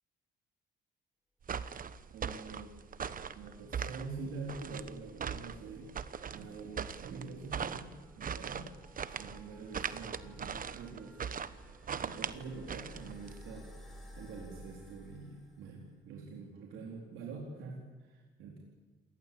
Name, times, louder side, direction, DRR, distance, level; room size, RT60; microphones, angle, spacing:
sound 1, 1.4-13.4, right 7 dB, 45° right, 1.2 m, -40 dB
voice 1, 2.1-2.7 3.3-8.7 9.1-11.2 12.0-13.7 14.2-18.6, right 4 dB, 85° right, -1 dB, 4.0 m, -45 dB
sound 2, 2.4-16.0, equal, ahead, 7.4 m, -56 dB
27.0 x 19.0 x 8.7 m, 1.3 s
cardioid pair, 90°, 20 cm